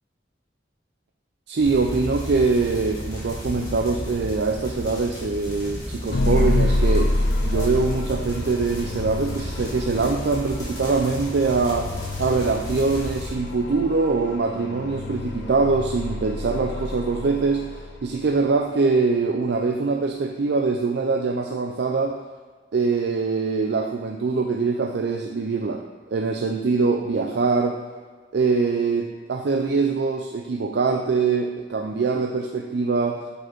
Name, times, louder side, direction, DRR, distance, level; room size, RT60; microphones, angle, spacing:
voice 1, 1.5-7.1 7.4-11.9 12.2-22.2 22.7-25.8 26.1-27.8 28.3-33.3, right 4 dB, 65° right, 3 dB, 0.4 m, -23 dB
sound 1, 1.6-13.3, equal, 20° left, 1.9 m, -34 dB
sound 2, 6.1-18.3, left 2 dB, 70° left, 0.7 m, -28 dB
6.3 x 5.1 x 4.5 m, 1.5 s
head